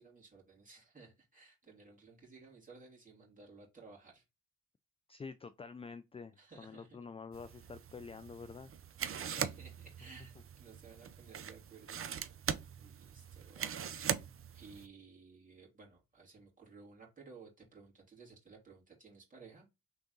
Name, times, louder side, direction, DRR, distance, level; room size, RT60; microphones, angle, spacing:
voice 1, 0.0-4.2 6.4-7.0 7.5-7.7 9.0-12.5 12.8-14.3 14.5-19.7, right 4 dB, 25° right, 2.6 m, -57 dB
voice 2, 5.1-8.7, left 5 dB, 15° left, 0.4 m, -48 dB
sound 1, 7.3-14.9, right 8 dB, 40° right, 0.6 m, -41 dB
3.9 x 3.4 x 3.9 m
supercardioid pair, 70°, 34 cm